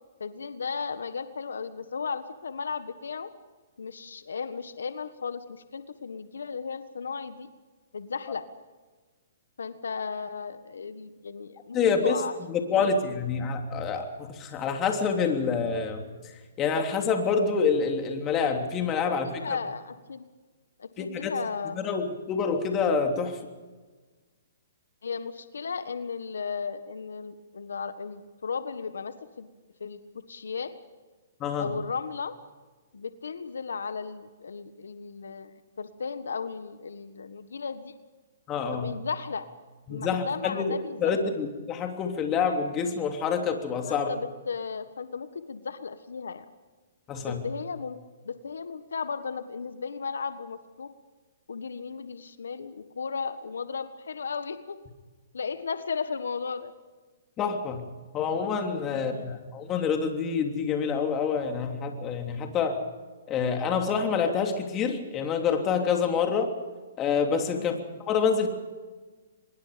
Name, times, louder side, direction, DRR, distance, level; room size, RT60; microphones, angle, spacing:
voice 1, 0.2-3.3 3.8-7.5 7.9-8.4 9.6-11.8 12.0-12.3 12.7-13.0 19.0-20.3 20.8-21.8 25.0-29.5 29.8-30.0 30.3-30.8 31.6-32.3 32.9-37.9 38.7-39.4 39.9-41.3 43.8-46.5 47.2-48.0 48.2-50.9 51.5-54.8 55.3-56.7 58.9-59.4 67.5-67.8, left 5 dB, 90° left, 11 dB, 1.4 m, -35 dB
voice 2, 11.7-12.2 12.5-16.0 16.6-19.4 21.0-21.3 21.7-23.4 31.4-31.7 38.5-38.9 39.9-44.1 47.1-47.4 57.4-57.9 58.1-62.8 63.3-66.5 67.0-67.8 68.1-68.5, left 5 dB, 20° left, 4 dB, 3.2 m, -27 dB
25.0 x 21.5 x 5.2 m, 1.3 s
hypercardioid pair, 150°, 0 cm